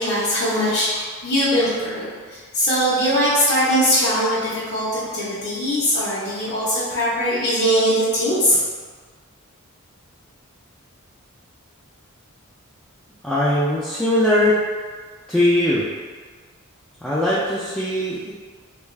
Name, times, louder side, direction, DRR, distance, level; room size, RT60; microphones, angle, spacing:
voice 1, 0.0-4.8 5.1-8.6, equal, 50° left, -12 dB, 0.8 m, -21 dB
voice 2, 13.2-14.6 15.3-15.9 17.0-18.3, left 1 dB, 5° left, -10 dB, 0.3 m, -20 dB
3.4 x 2.3 x 3.1 m, 1.5 s
head